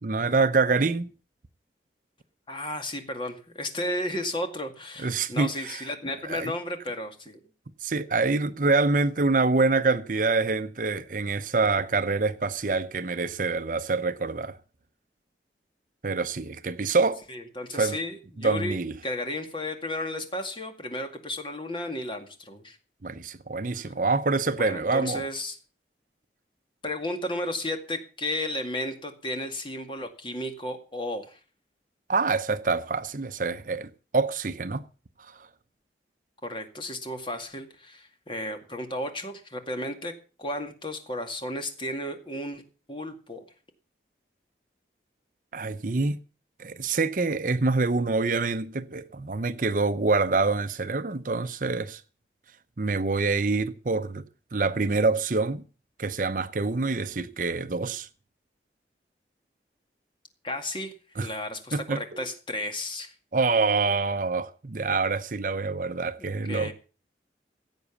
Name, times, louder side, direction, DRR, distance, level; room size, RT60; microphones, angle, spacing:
voice 1, 0.0-1.1 5.0-5.8 6.2-6.5 7.8-14.6 16.0-17.2 17.7-18.0 18.4-18.9 23.0-25.3 32.1-34.8 45.5-46.2 46.6-52.0 52.8-54.2 54.5-55.6 56.0-58.1 61.2-61.3 61.7-62.3 63.3-66.7, right 3 dB, 50° right, 0.7 m, -26 dB
voice 2, 2.5-7.4 17.3-18.8 19.0-22.8 24.6-25.6 26.8-31.4 36.4-40.1 40.4-42.6 42.9-43.4 60.4-63.1 66.2-66.7, left 1 dB, 30° left, 2.1 m, -33 dB
16.0 x 8.2 x 7.2 m
head